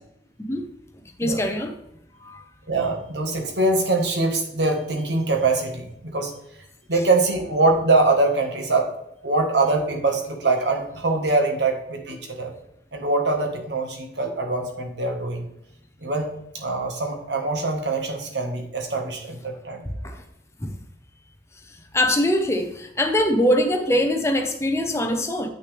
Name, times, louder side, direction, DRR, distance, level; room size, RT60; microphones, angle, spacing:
voice 1, 1.2-1.7 2.2-2.4 20.0-20.2 20.6-20.8 21.9-25.5, left 1 dB, 15° left, 5 dB, 0.7 m, -22 dB
voice 2, 2.7-6.3 6.9-8.9 9.2-12.5 12.9-15.5 16.0-19.8, right 2 dB, 75° right, 3 dB, 1.4 m, -23 dB
8.6 x 6.2 x 3.3 m, 0.79 s
head